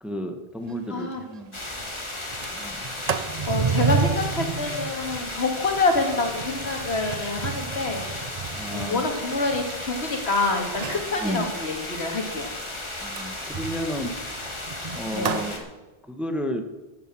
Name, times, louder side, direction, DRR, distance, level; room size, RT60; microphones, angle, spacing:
voice 1, 0.0-1.6 2.5-2.8 8.5-9.1 11.2-11.5 13.0-14.1 14.9-15.7 16.1-16.6, equal, ahead, 6 dB, 1.1 m, -32 dB
Sliding door, 0.7-0.8 1.1-1.2 1.5-1.8 2.2-10.2 10.7-11.1 13.1-15.5, right 6 dB, 45° right, 0.7 m, -31 dB
voice 2, 0.9-1.2 3.5-8.2 8.7-12.5 15.1-15.3, left 3 dB, 80° left, 3 dB, 2.2 m, -27 dB
sound 1, 1.5-15.6, left 1 dB, 25° left, 1.8 m, -35 dB
13.5 x 7.5 x 7.6 m, 1.2 s
omnidirectional pair, 1.1 m